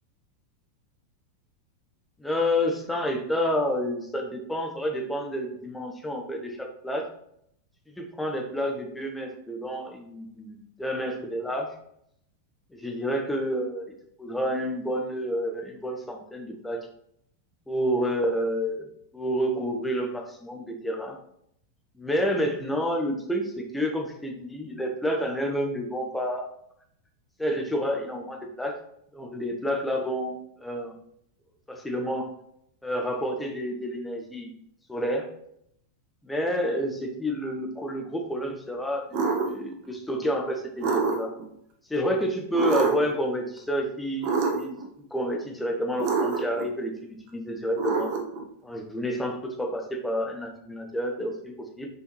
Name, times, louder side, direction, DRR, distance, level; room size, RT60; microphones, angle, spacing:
voice 1, 2.2-7.1 8.0-11.7 12.7-13.9 14.2-16.9 17.7-18.9 19.1-21.2 22.0-26.5 27.4-28.7 29.1-31.0 31.7-32.3 32.8-34.5 34.9-35.3 36.2-41.3 41.9-44.8 45.1-48.1 48.6-51.9, equal, 5° left, 2 dB, 1.1 m, -29 dB
sound 1, 39.1-39.5 40.8-41.5 42.5-43.2 44.2-44.8 46.0-46.7 47.8-48.4, right 5 dB, 45° right, 0.9 m, -26 dB
6.6 x 4.6 x 3.2 m, 0.72 s
figure-of-eight pair, 90°, 0 cm